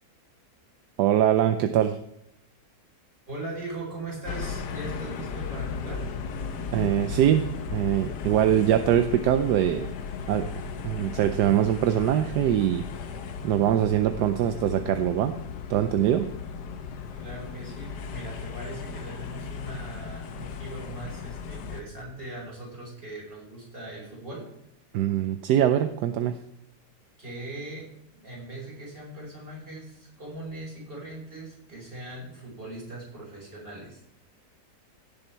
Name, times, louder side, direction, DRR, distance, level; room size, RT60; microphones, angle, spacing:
voice 1, 1.0-2.0 6.7-9.9 10.3-10.5 10.8-12.8 13.4-15.3 15.7-16.3 24.9-26.3, right 11 dB, 75° right, 9 dB, 1.2 m, -23 dB
voice 2, 3.3-6.1 17.1-24.5 27.2-27.9 28.1-34.0, right 2 dB, 30° right, -3 dB, 5.3 m, -40 dB
sound 1, 4.2-21.8, left 5 dB, 80° left, 1.5 m, -36 dB
17.0 x 7.2 x 4.5 m, 0.80 s
omnidirectional pair, 1.8 m